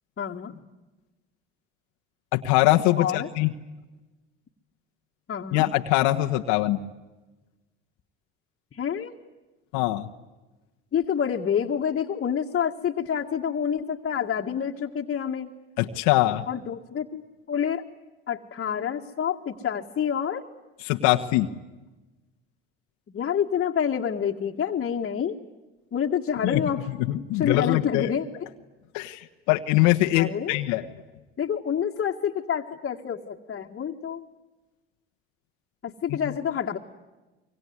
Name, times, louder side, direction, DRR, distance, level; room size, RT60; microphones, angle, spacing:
voice 1, 0.2-0.6 3.0-3.3 5.3-5.7 8.7-9.2 10.9-15.5 16.5-17.2 17.5-17.8 18.3-20.4 23.1-25.4 25.9-26.9 27.3-28.3 30.1-30.6 31.4-34.2 35.8-36.8, left 8 dB, 40° left, -2 dB, 2.0 m, -28 dB
voice 2, 2.3-3.5 5.5-6.8 9.7-10.1 15.8-16.4 20.8-21.5 26.4-26.6 27.1-28.1 28.9-30.9, left 16 dB, 80° left, 5 dB, 1.4 m, -22 dB
25.0 x 24.0 x 9.7 m, 1.1 s
supercardioid pair, 85°, 29 cm